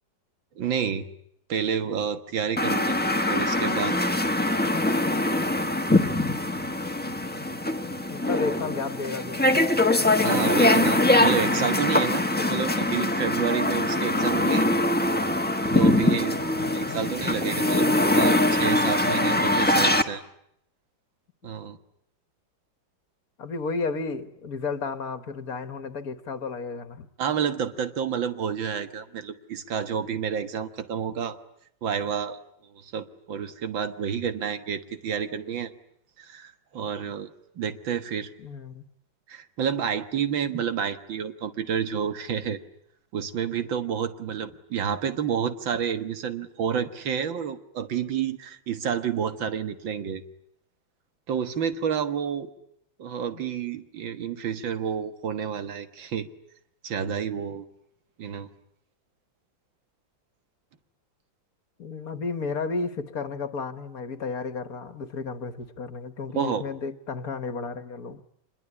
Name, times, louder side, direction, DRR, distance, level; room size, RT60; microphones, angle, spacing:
voice 1, 0.6-1.1 1.5-4.0 10.2-12.2 12.5-14.7 15.7-16.4 16.7-17.9 18.2-20.2 21.4-21.8 27.2-31.4 31.8-32.4 32.7-35.7 36.2-37.3 37.6-38.3 39.3-42.6 43.1-50.2 51.3-52.5 53.0-56.3 56.8-57.6 58.2-58.5 66.4-66.7, right 7 dB, 85° right, 2.2 m, -29 dB
sound 1, 2.6-20.0, left 1 dB, 5° left, 1.1 m, -23 dB
voice 2, 8.1-9.6 16.5-17.0 23.4-27.1 38.4-38.8 53.3-53.4 61.8-68.2, left 4 dB, 50° left, 1.7 m, -33 dB
26.0 x 22.0 x 9.9 m
omnidirectional pair, 2.0 m